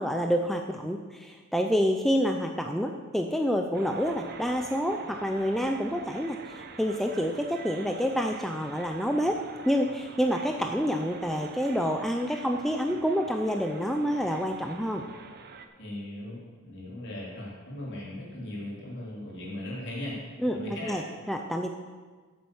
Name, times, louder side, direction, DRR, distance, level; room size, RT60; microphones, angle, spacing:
voice 1, 0.0-9.4 9.7-15.0 20.4-20.6 20.9-21.0 21.3-21.7, equal, ahead, 3 dB, 0.4 m, -28 dB
sound 1, 3.7-15.7, right 4 dB, 45° right, 0.8 m, -46 dB
voice 2, 15.8-20.2 20.5-21.0, left 1 dB, 55° left, -5 dB, 3.6 m, -38 dB
8.8 x 7.5 x 7.1 m, 1.4 s
head